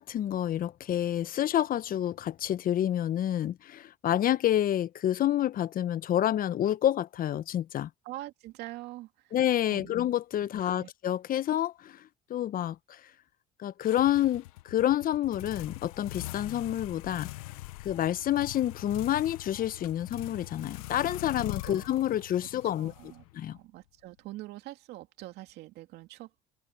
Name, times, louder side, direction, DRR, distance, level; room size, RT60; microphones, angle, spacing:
voice 1, 0.0-7.9 9.3-12.0 12.3-13.0 13.6-17.3 17.8-22.9 23.3-23.6, left 11 dB, 55° left, 1.2 m, -28 dB
voice 2, 8.0-9.4 9.7-9.9 10.6-10.9 21.6-22.0 22.8-26.3, right 17 dB, 70° right, 2.5 m, -44 dB
sound 1, 13.8-23.6, left 19 dB, 85° left, 1.0 m, -43 dB
open air
hypercardioid pair, 65°, 18 cm